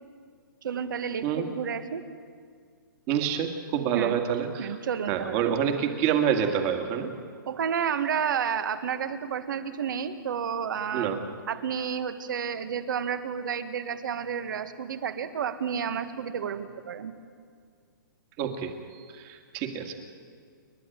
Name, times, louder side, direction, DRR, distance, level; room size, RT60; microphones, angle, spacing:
voice 1, 0.6-2.0 3.9-4.2 4.6-5.5 7.5-11.2 11.5-17.1, right 7 dB, 60° right, 10 dB, 1.6 m, -31 dB
voice 2, 3.1-4.7 5.1-7.1 10.9-11.2 18.4-20.0, right 8 dB, 25° right, 5 dB, 2.0 m, -27 dB
30.0 x 11.5 x 9.2 m, 2.1 s
hypercardioid pair, 160°, 12 cm